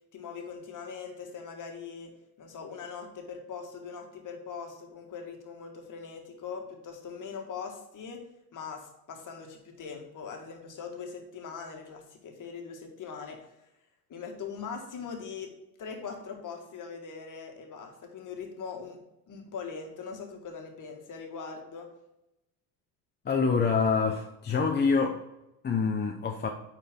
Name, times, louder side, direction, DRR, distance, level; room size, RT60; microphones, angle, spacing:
voice 1, 0.1-8.2 8.5-13.5 14.1-19.0 19.3-21.9, left 6 dB, 40° left, 3 dB, 1.9 m, -41 dB
voice 2, 23.2-25.2 25.6-26.5, left 5 dB, 20° left, 2 dB, 0.7 m, -26 dB
9.2 x 4.6 x 3.7 m, 0.89 s
hypercardioid pair, 90°, 49 cm